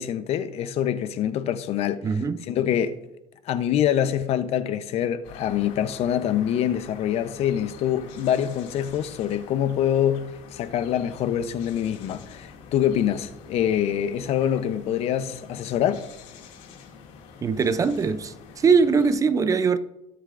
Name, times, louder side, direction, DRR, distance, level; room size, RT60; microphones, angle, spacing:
voice 1, 0.0-3.0 3.5-16.1, left 10 dB, 55° left, 0.8 m, -25 dB
voice 2, 2.0-2.4 17.4-19.8, right 5 dB, 25° right, 0.5 m, -21 dB
sound 1, 5.2-19.2, left 5 dB, 75° left, 2.4 m, -46 dB
21.0 x 8.0 x 2.6 m
cardioid pair, 125°, 13 cm